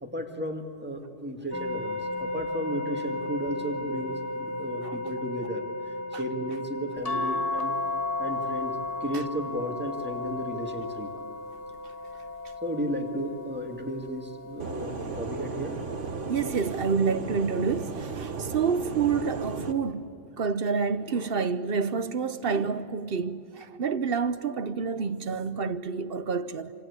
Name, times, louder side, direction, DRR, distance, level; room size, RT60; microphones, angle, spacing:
voice 1, 0.0-7.8 8.2-11.1 12.6-15.8, equal, 10° right, 2.1 m, -34 dB
sound 1, 1.5-16.5, left 1 dB, 10° left, 3.4 m, -37 dB
sound 2, 7.0-13.7 14.3-15.7 16.9-17.4 17.7-17.8, left 3 dB, 30° left, 1.3 m, -35 dB
sound 3, 14.6-19.7, right 4 dB, 75° right, 1.6 m, -35 dB
voice 2, 16.3-26.7, right 5 dB, 55° right, 1.0 m, -28 dB
27.5 x 26.0 x 8.3 m
omnidirectional pair, 1.3 m